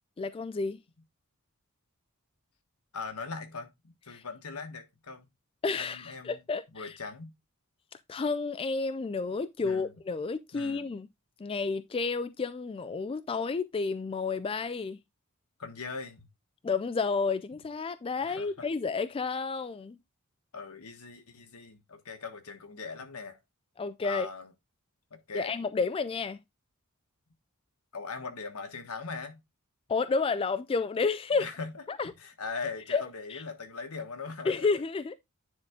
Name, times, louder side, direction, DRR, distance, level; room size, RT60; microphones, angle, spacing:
voice 1, 0.2-0.8 4.1-4.2 5.6-7.0 7.9-11.1 11.4-15.0 16.6-20.0 23.8-24.3 25.3-26.4 29.9-31.5 31.9-32.1 32.9-33.0 33.3-33.4 34.4-35.1, left 4 dB, 25° left, 0.3 m, -31 dB
voice 2, 2.9-5.3 5.8-6.4 6.7-7.3 9.6-9.9 10.5-10.9 15.6-16.3 18.2-18.7 20.5-23.4 24.0-24.5 25.1-25.5 27.9-29.4 31.4-34.7, left 4 dB, 80° left, 1.3 m, -40 dB
9.8 x 3.8 x 3.5 m
head